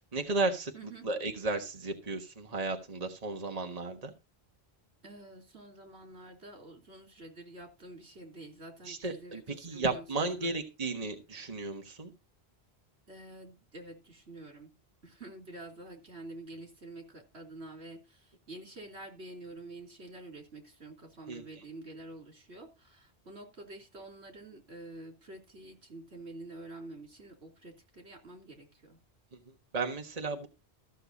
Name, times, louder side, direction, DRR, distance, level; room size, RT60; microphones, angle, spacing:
voice 1, 0.1-4.1 8.8-12.1 21.3-21.4 29.3-29.4 29.7-30.5, right 3 dB, 40° right, 4 dB, 1.6 m, -34 dB
voice 2, 0.7-1.0 5.0-10.5 13.1-14.7 15.0-29.0, right 2 dB, 90° right, 2 dB, 3.7 m, -48 dB
14.5 x 6.8 x 4.1 m, 0.28 s
omnidirectional pair, 1.1 m